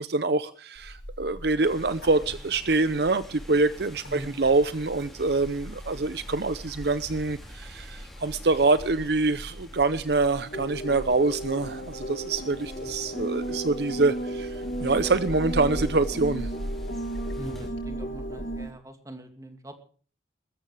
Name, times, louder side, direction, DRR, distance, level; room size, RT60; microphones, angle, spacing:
voice 1, 0.0-16.5, right 3 dB, 60° right, 14 dB, 0.7 m, -25 dB
Bird, 0.7-18.7, equal, 85° left, 5.8 m, -41 dB
sound 1, 1.6-17.7, equal, ahead, 4.9 m, -50 dB
voice 2, 4.0-4.4 12.8-13.2 17.4-19.8, right 1 dB, 20° right, 6 dB, 2.4 m, -43 dB
sound 2, 10.5-18.7, right 1 dB, 50° left, 2.6 m, -35 dB
21.5 x 14.0 x 3.4 m, 0.42 s
head